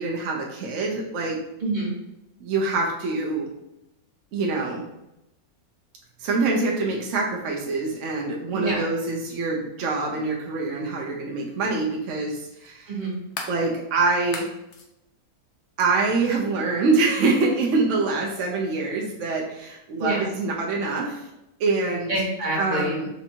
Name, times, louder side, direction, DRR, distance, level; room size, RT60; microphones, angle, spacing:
voice 1, 0.0-1.4 2.4-3.5 4.3-4.8 6.2-12.9 13.5-14.5 15.8-21.2 21.6-22.1 22.5-23.1, right 3 dB, 65° right, -1 dB, 0.8 m, -25 dB
voice 2, 1.6-2.0 8.5-8.8 12.9-13.2 20.0-20.2 22.1-23.0, right 1 dB, 35° right, -6 dB, 1.2 m, -26 dB
sound 1, 10.6-10.7 12.6-13.6 14.2-14.9 15.8-15.9, left 4 dB, 65° left, 0.7 m, -36 dB
4.3 x 2.6 x 2.8 m, 0.88 s
omnidirectional pair, 1.6 m